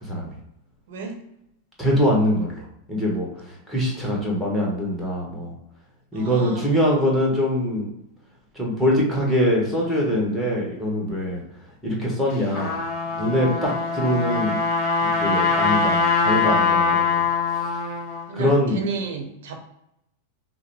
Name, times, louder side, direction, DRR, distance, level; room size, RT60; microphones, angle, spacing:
voice 1, 0.0-0.3 1.8-2.6 2.9-5.5 6.1-7.9 8.5-11.4 11.8-12.7 13.2-14.6 15.0-17.2 17.5-17.8 18.3-18.8, equal, ahead, -4 dB, 1.6 m, -23 dB
voice 2, 0.9-1.2 6.1-6.7 18.3-19.6, right 4 dB, 55° right, 3 dB, 0.9 m, -33 dB
Trumpet, 12.3-18.2, left 4 dB, 40° left, 1.4 m, -22 dB
5.5 x 2.1 x 3.4 m, 0.80 s
figure-of-eight pair, 90°, 0 cm